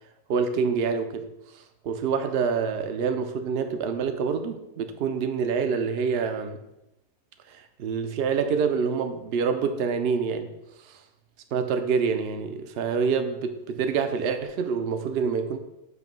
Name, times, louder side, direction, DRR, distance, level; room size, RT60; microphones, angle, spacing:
voice 1, 0.3-6.6 7.5-10.5 10.8-11.0 11.5-15.6, right 5 dB, 65° right, 0.6 m, -27 dB
8.1 x 2.8 x 5.2 m
omnidirectional pair, 1.6 m